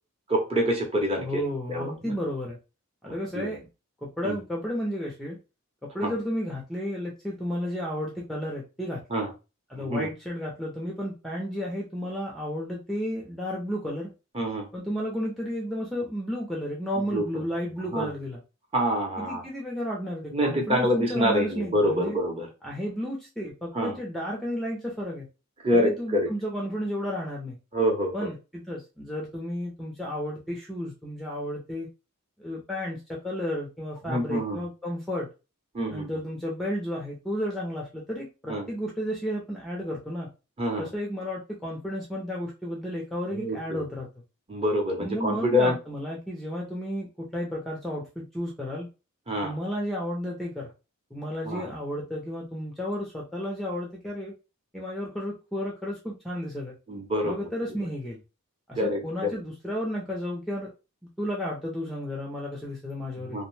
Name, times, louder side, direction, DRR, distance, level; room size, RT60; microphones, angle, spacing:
voice 1, 0.3-1.4 1.7-2.1 3.0-3.5 4.2-4.4 6.0-6.1 9.1-9.3 9.7-10.1 14.3-14.7 17.1-17.2 17.9-18.1 18.7-19.4 20.3-22.5 23.7-24.0 25.6-26.3 27.7-28.3 34.0-34.6 35.7-36.1 38.5-38.7 40.6-40.9 43.3-43.8 44.5-45.7 49.3-49.5 51.4-51.7 56.9-57.4 58.8-59.3 63.3-63.5, equal, 25° right, 1 dB, 0.7 m, -26 dB
voice 2, 1.2-2.6 3.0-3.7 4.0-5.4 5.9-9.2 9.7-14.1 14.7-18.4 19.2-22.2 22.6-25.3 25.7-27.6 28.1-31.9 32.4-35.3 35.9-40.3 40.8-44.1 45.0-48.9 49.4-50.7 51.1-54.3 54.7-56.7 57.2-58.2 58.7-60.7 61.2-63.5, equal, ahead, -2 dB, 0.4 m, -32 dB
2.6 x 2.0 x 3.1 m, 0.30 s
head